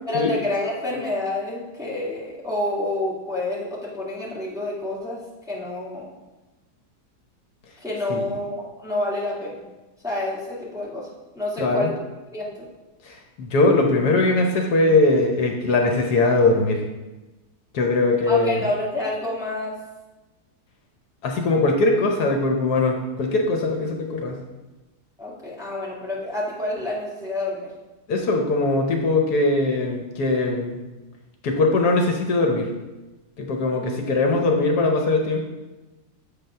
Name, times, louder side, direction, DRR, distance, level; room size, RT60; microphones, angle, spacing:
voice 1, 0.1-5.2 5.5-6.1 7.8-9.6 10.0-11.1 11.3-11.9 12.3-12.7 18.3-19.8 25.2-27.7, left 2 dB, ahead, -7 dB, 1.7 m, -28 dB
voice 2, 11.6-11.9 13.0-16.8 17.7-18.7 21.2-24.4 28.1-30.8 31.4-32.7 33.4-35.4, left 2 dB, 75° left, 2 dB, 1.3 m, -21 dB
7.0 x 4.0 x 5.5 m, 1.1 s
omnidirectional pair, 1.7 m